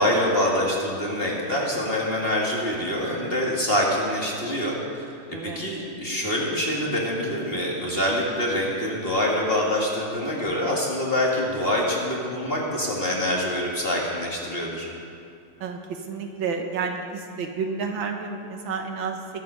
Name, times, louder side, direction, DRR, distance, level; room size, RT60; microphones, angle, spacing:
voice 1, 0.0-14.9, left 1 dB, 30° left, -3 dB, 1.8 m, -25 dB
voice 2, 5.3-5.6 15.6-19.2, right 5 dB, 70° right, 4 dB, 1.7 m, -30 dB
20.5 x 7.4 x 5.5 m, 2.5 s
omnidirectional pair, 2.3 m